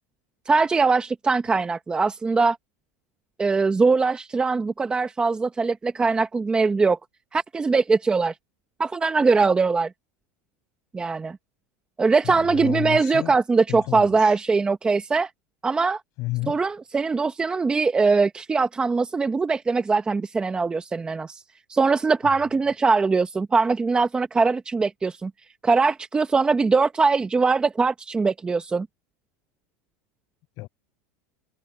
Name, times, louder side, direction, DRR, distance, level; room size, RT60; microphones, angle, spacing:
voice 1, 0.5-2.6 3.4-7.0 7.3-8.3 8.8-9.9 10.9-11.4 12.0-15.3 15.6-16.0 16.5-21.4 21.7-25.3 25.6-28.9, right 4 dB, 10° right, 0.9 m, -21 dB
voice 2, 12.2-13.4 13.7-14.4 16.2-16.6 30.6-30.7, left 21 dB, 45° left, 7.5 m, -31 dB
supercardioid pair, 150°, 8 cm